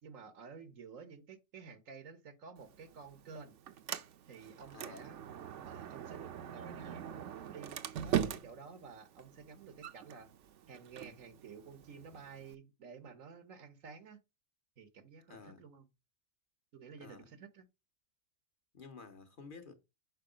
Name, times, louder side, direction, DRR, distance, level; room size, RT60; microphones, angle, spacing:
voice 1, 0.0-3.5 4.3-5.2 5.6-10.3 10.7-14.2 14.8-15.8 16.7-17.7, right 5 dB, 90° right, 1.6 m, -52 dB
Sliding door, 2.6-12.6, right 10 dB, 70° right, 1.0 m, -42 dB
voice 2, 4.7-5.1 15.3-15.6 17.0-17.3 18.7-19.7, left 4 dB, 45° left, 1.1 m, -52 dB
6.7 x 4.7 x 5.0 m
omnidirectional pair, 1.3 m